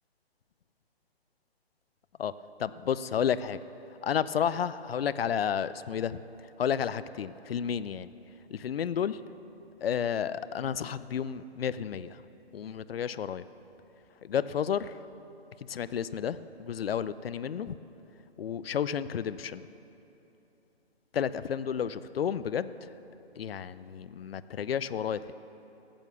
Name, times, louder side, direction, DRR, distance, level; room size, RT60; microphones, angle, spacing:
voice 1, 2.6-3.6 4.0-6.2 6.6-8.1 8.5-9.2 9.8-12.2 12.5-13.4 14.2-14.9 15.7-17.8 18.4-19.6 21.1-22.9 23.4-25.3, left 8 dB, 65° left, 15 dB, 0.6 m, -31 dB
14.5 x 9.0 x 7.1 m, 3.0 s
hypercardioid pair, 145°, 32 cm